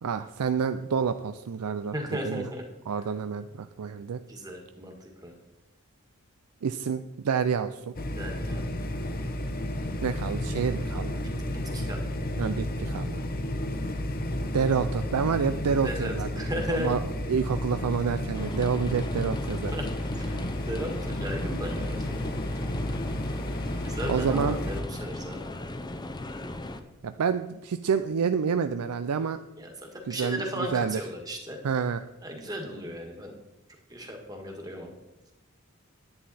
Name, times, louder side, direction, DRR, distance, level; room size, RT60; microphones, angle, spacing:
voice 1, 0.0-1.9 2.2-2.5 2.9-4.2 6.6-7.9 10.0-11.2 12.4-13.2 14.5-16.3 16.7-17.0 17.3-19.7 24.1-24.6 27.0-29.4 30.1-31.0 31.6-32.0, right 6 dB, 85° right, 10 dB, 0.4 m, -28 dB
voice 2, 1.9-2.6 4.3-5.3 8.2-8.6 11.2-11.3 11.7-12.2 15.8-17.0 19.7-19.9 20.1-22.3 23.8-25.5 29.6-31.6 32.2-33.3 33.9-34.9, equal, 15° right, 2 dB, 1.7 m, -36 dB
sound 1, 8.0-24.8, left 1 dB, 40° left, 0.9 m, -32 dB
sound 2, 18.3-26.8, left 1 dB, 20° left, 0.6 m, -38 dB
10.5 x 9.6 x 4.2 m, 1.0 s
head